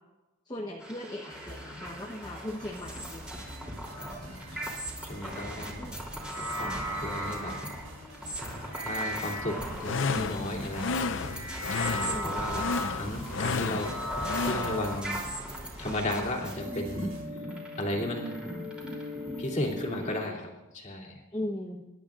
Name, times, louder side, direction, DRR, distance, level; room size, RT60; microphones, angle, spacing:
voice 1, 0.5-3.3 4.2-4.4 5.8-6.0 11.8-12.4 21.3-21.9, left 1 dB, 20° left, -1 dB, 1.0 m, -38 dB
sound 1, 0.8-20.3, equal, 5° right, 3.1 m, -37 dB
sound 2, 1.3-17.2, equal, 75° right, 4.4 m, -48 dB
voice 2, 4.0-4.7 5.0-6.0 6.3-7.6 8.4-11.1 11.7-14.0 14.4-15.2 15.8-17.5 17.8-18.4 19.4-21.3, left 1 dB, 35° left, -1 dB, 2.7 m, -35 dB
sound 3, 9.6-15.0, left 4 dB, 65° left, 0.5 m, -32 dB
26.5 x 12.0 x 2.5 m, 1.1 s
head